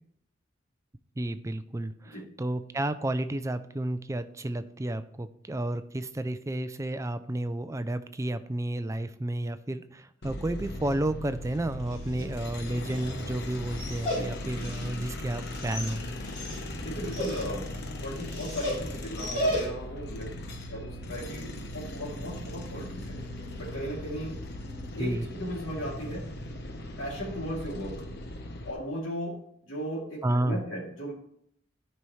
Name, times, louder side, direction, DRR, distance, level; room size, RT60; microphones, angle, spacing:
voice 1, 1.2-16.0 25.0-25.3 30.2-30.7, right 1 dB, 15° right, 11 dB, 0.4 m, -31 dB
sound 1, 10.2-28.7, left 1 dB, 55° left, 1.0 m, -39 dB
Dog, 11.7-20.0, equal, 40° left, 3.6 m, -36 dB
voice 2, 16.8-17.6 18.0-20.4 20.7-23.2 23.6-24.3 24.9-25.1 25.4-26.2 27.0-27.9 28.6-29.4 29.6-31.1, equal, 80° left, -6 dB, 3.0 m, -36 dB
12.0 x 5.5 x 3.2 m, 0.70 s
head